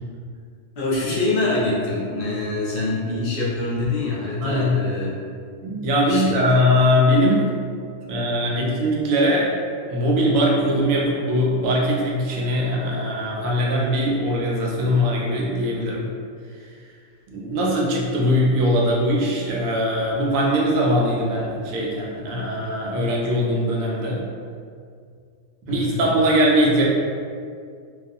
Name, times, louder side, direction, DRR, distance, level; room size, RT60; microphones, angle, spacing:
voice 1, 0.8-5.1 6.0-6.3 17.4-17.5 25.7-26.1, left 2 dB, 55° left, -6 dB, 0.6 m, -25 dB
voice 2, 4.4-4.8 5.6-7.5 8.1-9.5 9.9-16.1 17.3-24.2 25.6-26.8, equal, 90° right, -3 dB, 1.0 m, -21 dB
2.5 x 2.3 x 2.5 m, 2.2 s
omnidirectional pair, 1.4 m